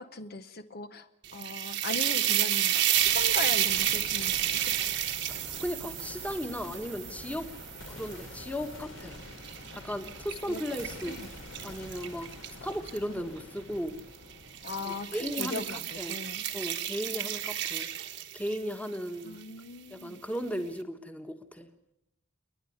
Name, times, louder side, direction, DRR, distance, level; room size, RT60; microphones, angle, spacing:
voice 1, 0.0-4.9 10.5-10.6 11.1-11.3 13.1-13.3 14.6-16.4 19.2-20.2, left 3 dB, 50° left, 10 dB, 0.8 m, -39 dB
sound 1, 1.2-8.5 9.0-13.0 13.9-14.2 14.5-18.7, right 12 dB, 60° right, 1.2 m, -31 dB
sound 2, 3.0-16.9, left 1 dB, 70° left, 2.9 m, -47 dB
voice 2, 5.3-7.5 7.9-9.2 9.7-11.2 11.6-12.3 12.6-14.0 14.8-16.2 16.5-17.9 18.3-19.4 19.9-21.7, equal, 5° left, 7 dB, 1.4 m, -36 dB
29.5 x 10.5 x 9.5 m, 0.87 s
head